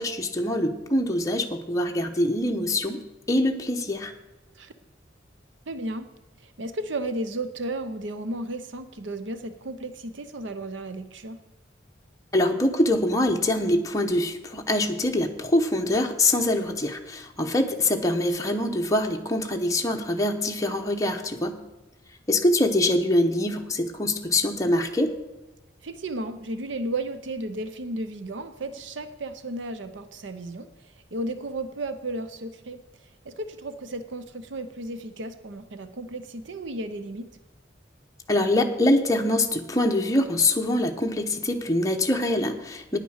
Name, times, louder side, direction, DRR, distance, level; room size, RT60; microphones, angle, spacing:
voice 1, 0.0-3.0 3.3-4.1 12.3-21.6 22.3-25.1 38.3-43.0, left 1 dB, 15° left, 2 dB, 1.0 m, -24 dB
voice 2, 5.7-6.1 6.4-11.4 25.8-37.3, right 2 dB, 70° right, 10 dB, 0.7 m, -34 dB
9.6 x 9.3 x 6.4 m, 1.1 s
head